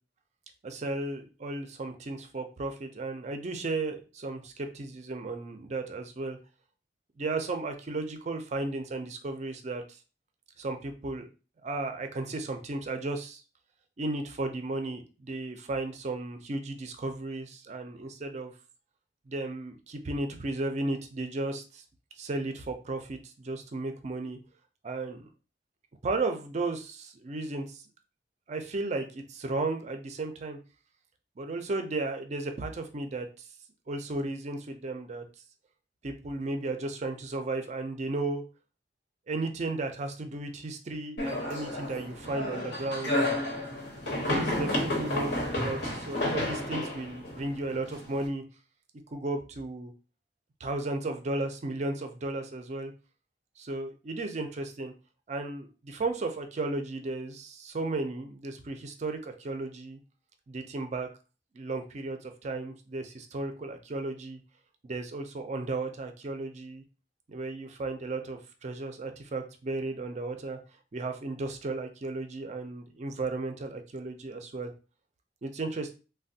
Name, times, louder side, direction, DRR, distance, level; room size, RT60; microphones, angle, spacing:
voice 1, 0.6-6.4 7.2-9.8 10.6-11.3 11.6-13.4 14.0-18.5 19.3-21.8 22.2-24.4 24.8-25.3 26.0-27.8 28.5-30.6 31.4-33.4 33.9-35.2 36.0-38.4 39.3-43.2 44.3-48.4 49.1-49.9 50.6-52.9 53.6-54.9 55.3-60.0 60.5-61.1 61.5-64.4 64.8-66.8 67.3-70.6 70.9-74.7 75.4-75.9, right 2 dB, 40° right, 6 dB, 0.4 m, -34 dB
sound 1, 41.2-48.3, left 1 dB, 70° left, 0.9 m, -31 dB
3.2 x 2.2 x 2.7 m, 0.33 s
head